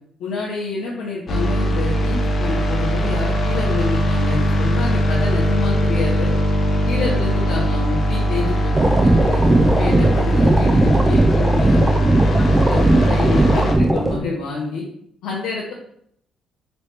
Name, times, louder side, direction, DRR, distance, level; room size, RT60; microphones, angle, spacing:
voice 1, 0.2-6.3 6.8-9.4 9.8-14.8 15.2-15.7, left 3 dB, 90° left, -5 dB, 0.7 m, -28 dB
sound 1, 1.3-13.7, equal, 50° left, 0.6 m, -20 dB
sound 2, 8.7-14.2, right 1 dB, 20° right, 0.4 m, -17 dB
3.1 x 3.0 x 3.1 m, 0.69 s
cardioid pair, 90°, 0 cm